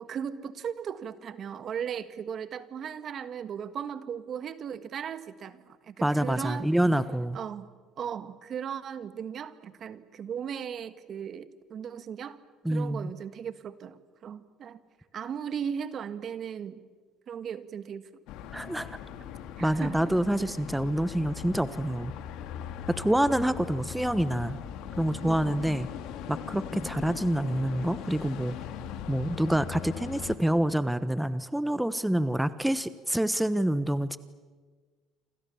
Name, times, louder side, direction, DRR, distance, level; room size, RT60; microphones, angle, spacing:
voice 1, 0.0-6.7 7.3-7.7 8.0-12.4 12.7-14.8 15.1-16.8 17.3-18.1 19.6-20.1 25.2-25.8, right 8 dB, 55° right, 12 dB, 1.7 m, -37 dB
voice 2, 6.0-7.4 12.6-13.1 18.5-19.0 19.6-22.1 22.9-24.6 25.0-25.9 26.3-28.5 29.1-34.2, right 1 dB, 5° right, 13 dB, 1.2 m, -27 dB
sound 1, 18.3-30.4, left 9 dB, 75° left, 2.3 m, -40 dB
28.0 x 27.0 x 7.2 m, 1.5 s
hypercardioid pair, 70°, 0 cm